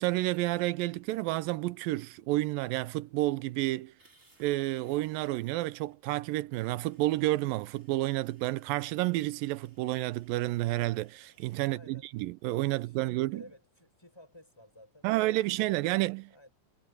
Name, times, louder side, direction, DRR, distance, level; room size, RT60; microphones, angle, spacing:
voice 1, 0.0-3.9 4.4-13.4 15.0-16.3, right 18 dB, 80° right, 2.4 m, -30 dB
sound 1, 4.0-6.0 6.6-11.7, right 2 dB, 20° right, 4.7 m, -65 dB
voice 2, 11.6-12.1 12.6-16.5, left 1 dB, 5° left, 6.4 m, -55 dB
omnidirectional pair, 4.2 m